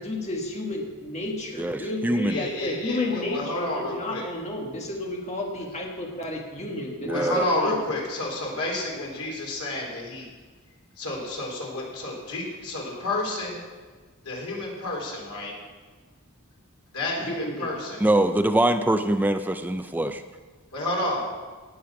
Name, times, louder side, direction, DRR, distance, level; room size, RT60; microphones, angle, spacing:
voice 1, 0.0-7.7 17.2-17.7, left 2 dB, 30° left, 0 dB, 1.5 m, -32 dB
voice 2, 1.6-2.4 7.1-7.4 18.0-20.2, right 1 dB, 10° right, 8 dB, 0.3 m, -23 dB
voice 3, 2.3-4.3 7.1-10.3 11.0-13.6 14.2-15.6 16.9-18.0 20.7-21.3, left 1 dB, 90° left, -2 dB, 3.7 m, -30 dB
18.0 x 6.7 x 5.8 m, 1.4 s
head